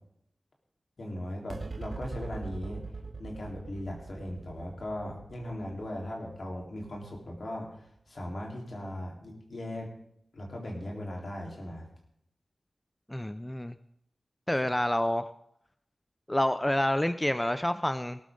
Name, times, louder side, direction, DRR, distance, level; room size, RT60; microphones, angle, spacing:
voice 1, 1.0-2.8 3.2-9.9 10.3-11.9, left 1 dB, 70° left, -1 dB, 4.0 m, -38 dB
sound 1, 1.5-8.2, right 3 dB, 60° right, 1.0 m, -43 dB
voice 2, 13.1-13.8 14.5-15.3 16.3-18.2, left 1 dB, 15° left, 12 dB, 0.6 m, -28 dB
18.0 x 13.5 x 3.9 m, 0.74 s
cardioid pair, 45°, 0 cm